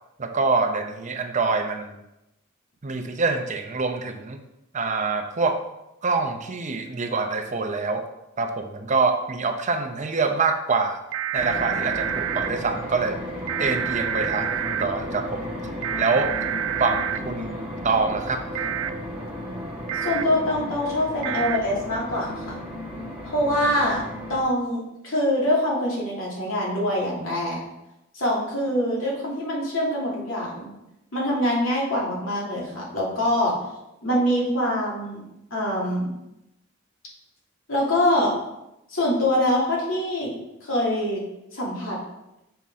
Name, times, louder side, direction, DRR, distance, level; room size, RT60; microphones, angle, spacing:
voice 1, 0.2-1.9 2.8-4.4 4.7-5.6 6.0-8.0 8.4-11.0 11.3-13.2 13.6-15.5 16.0-16.3 16.8-18.4, right 4 dB, 35° right, 5 dB, 0.6 m, -25 dB
sound 1, 11.1-12.5 13.5-14.8 15.8-17.2 18.5-18.9 19.9-20.2 21.2-21.6, right 9 dB, 90° right, 0.4 m, -28 dB
sound 2, 11.4-24.4, left 1 dB, 5° right, 1.6 m, -34 dB
voice 2, 20.0-22.6 23.2-24.0 24.3-27.6 28.1-30.7 31.1-33.5 34.0-35.2 35.5-36.1 37.7-38.3 38.9-40.3 40.6-41.2 41.5-42.0, left 1 dB, 90° left, -4 dB, 2.6 m, -24 dB
6.8 x 5.9 x 3.6 m, 0.90 s
head